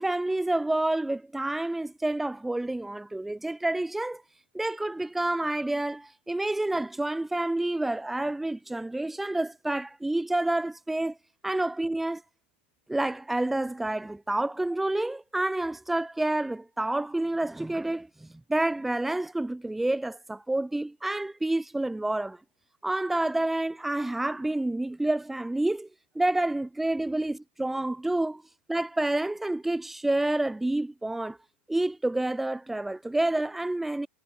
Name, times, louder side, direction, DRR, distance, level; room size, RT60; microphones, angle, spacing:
voice 1, 0.0-4.2 4.5-11.2 11.4-12.2 12.9-22.4 22.8-25.9 26.1-28.4 28.7-31.4 31.7-34.1, right 2 dB, 5° right, 1.3 m, -28 dB
supercardioid pair, 175°, 7 cm